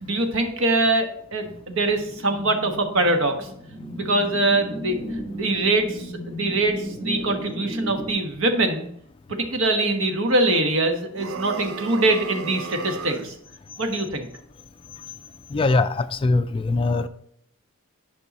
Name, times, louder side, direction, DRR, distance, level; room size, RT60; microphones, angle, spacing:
voice 1, 0.0-3.5 3.9-4.9 5.3-8.9 9.3-13.3 13.8-14.3, right 2 dB, 70° right, 5 dB, 1.2 m, -23 dB
sound 1, 1.4-8.1, equal, 40° right, 1.7 m, -35 dB
sound 2, 11.1-13.4, right 4 dB, 90° right, 0.6 m, -34 dB
voice 2, 15.5-17.1, left 3 dB, 25° left, 11 dB, 0.3 m, -21 dB
9.8 x 5.5 x 4.1 m, 0.69 s
head